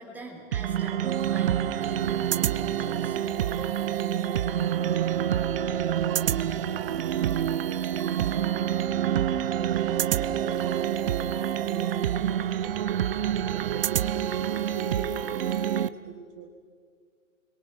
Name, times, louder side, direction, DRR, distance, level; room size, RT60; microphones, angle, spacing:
voice 1, 0.0-2.5 2.8-3.2, right 1 dB, 5° right, -3 dB, 4.1 m, -43 dB
sound 1, 0.5-15.9, right 10 dB, 45° right, 0.8 m, -27 dB
sound 2, 1.0-15.9, right 9 dB, 80° right, 0.7 m, -35 dB
voice 2, 9.7-14.1 14.4-16.5, right 6 dB, 30° right, 3 dB, 1.8 m, -44 dB
29.5 x 23.5 x 6.4 m, 2.1 s
hypercardioid pair, 150°, 40 cm